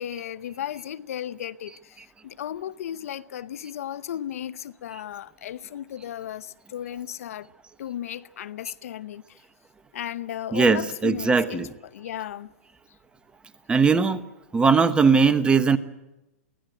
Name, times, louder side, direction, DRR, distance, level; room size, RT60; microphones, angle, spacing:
voice 1, 0.0-7.5 7.8-9.4 9.9-12.5, left 10 dB, 70° left, 0.8 m, -35 dB
voice 2, 10.5-11.7 13.7-14.2 14.5-15.8, right 5 dB, 10° right, 1.1 m, -19 dB
23.5 x 17.0 x 9.1 m
hypercardioid pair, 130°, 8 cm